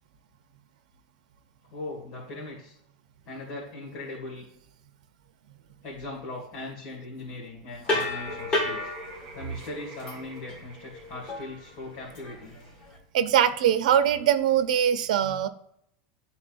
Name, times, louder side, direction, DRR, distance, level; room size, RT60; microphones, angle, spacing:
voice 1, 1.7-2.7 3.3-4.4 5.8-8.9 9.3-12.5, left 2 dB, 45° left, -5 dB, 2.4 m, -39 dB
sound 1, 7.8-13.0, left 2 dB, 20° left, 1.6 m, -32 dB
sound 2, 8.2-12.9, equal, 30° right, 2.9 m, -46 dB
voice 2, 13.1-15.5, right 9 dB, 85° right, 10 dB, 0.6 m, -22 dB
11.5 x 4.2 x 2.5 m, 0.72 s
supercardioid pair, 170°, 4 cm